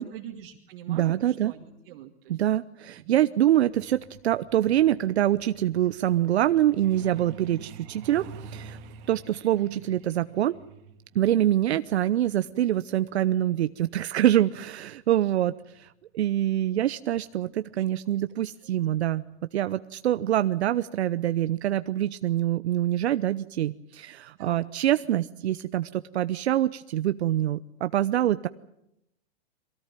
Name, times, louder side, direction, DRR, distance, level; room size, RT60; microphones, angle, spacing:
voice 1, 0.0-2.4 3.0-3.2 9.6-9.9 17.8-17.9 24.3-24.6, right 11 dB, 50° right, 1 dB, 2.4 m, -44 dB
voice 2, 0.9-1.5 2.3-8.8 9.1-10.6 11.1-19.2 19.5-28.5, right 12 dB, 75° right, 12 dB, 0.8 m, -25 dB
Truck, 3.6-15.9 17.1-17.3 17.7-17.9 18.2-18.5 18.8-18.9 19.4-19.5, right 5 dB, 35° right, 2.2 m, -48 dB
23.5 x 17.5 x 9.0 m, 0.79 s
hypercardioid pair, 140°, 33 cm